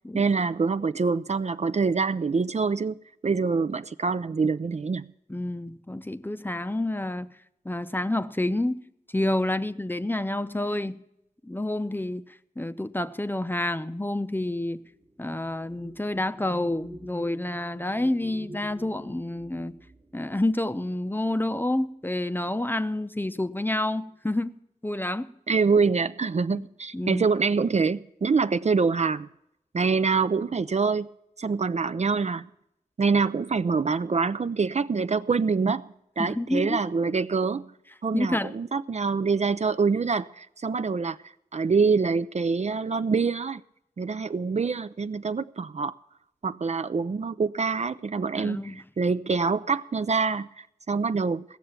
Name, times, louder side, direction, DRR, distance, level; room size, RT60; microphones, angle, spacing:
voice 1, 0.1-3.0 3.2-5.1 25.5-29.3 29.7-31.1 31.4-32.4 33.0-37.7 38.0-41.2 41.5-43.6 44.0-45.9 46.4-51.4, right 4 dB, 50° right, 0.4 m, -25 dB
voice 2, 5.3-7.3 7.6-8.8 9.1-11.0 11.4-12.2 12.6-14.8 15.2-19.8 20.1-25.3 26.5-26.7 26.9-27.3 36.2-36.9 38.1-38.6 48.4-48.8, left 1 dB, 15° left, 0.6 m, -29 dB
sound 1, 13.4-21.9 22.8-23.0 23.3-23.9, right 1 dB, 25° right, 1.0 m, -48 dB
16.5 x 6.9 x 8.8 m
wide cardioid pair, 70°, 15 cm